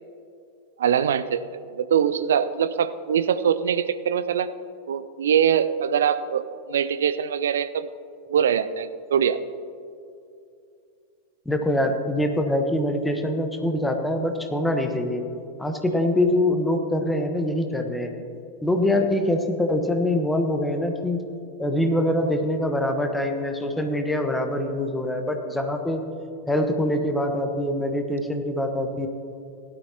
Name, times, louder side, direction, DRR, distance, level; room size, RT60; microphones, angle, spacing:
voice 1, 0.8-4.5 4.9-7.9 8.3-9.4, right 8 dB, 65° right, 13 dB, 0.5 m, -23 dB
voice 2, 11.4-15.2 15.6-18.1 18.6-21.2 21.6-26.0 26.5-29.1, left 1 dB, 5° left, 5 dB, 1.2 m, -24 dB
17.5 x 12.0 x 2.9 m, 2.6 s
figure-of-eight pair, 90°, 0 cm